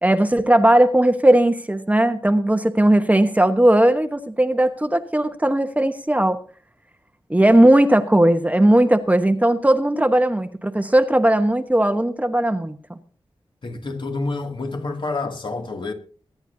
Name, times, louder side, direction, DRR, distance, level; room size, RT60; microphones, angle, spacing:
voice 1, 0.0-6.4 7.3-12.7, right 1 dB, 15° right, 1.1 m, -17 dB
voice 2, 13.6-15.9, left 3 dB, 60° left, 2.5 m, -28 dB
23.0 x 10.5 x 2.8 m
wide cardioid pair, 75°, 10 cm